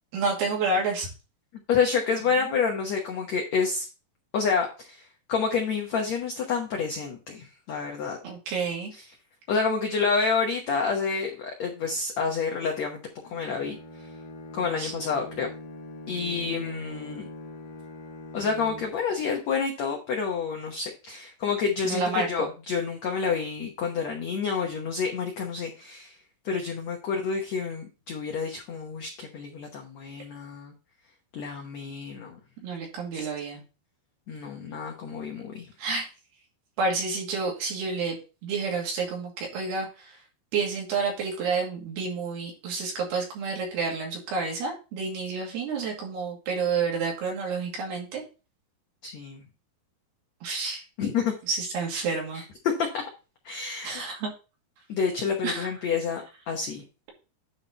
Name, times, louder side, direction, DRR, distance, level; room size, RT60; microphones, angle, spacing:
voice 1, 0.1-1.1 2.3-2.5 8.2-8.9 14.8-14.9 21.8-22.5 32.6-33.6 35.8-36.1 36.8-38.2 38.4-40.2 40.5-48.2 50.4-50.8 51.5-52.4 53.8-54.3 55.4-55.7, right 4 dB, 75° right, -1 dB, 4.4 m, -29 dB
voice 2, 1.7-3.9 4.3-8.2 8.9-9.0 9.5-13.0 13.2-14.1 14.5-15.5 16.1-17.3 18.3-26.2 26.4-30.7 31.3-32.4 33.1-33.3 34.3-35.7 49.0-49.4 51.0-51.3 52.3-52.4 52.8-53.0 53.4-54.0 54.9-56.8, left 5 dB, 85° left, 1 dB, 1.5 m, -29 dB
Bowed string instrument, 13.2-19.2, left 2 dB, 65° left, 1.2 m, -42 dB
9.6 x 4.1 x 4.2 m, 0.32 s
omnidirectional pair, 4.8 m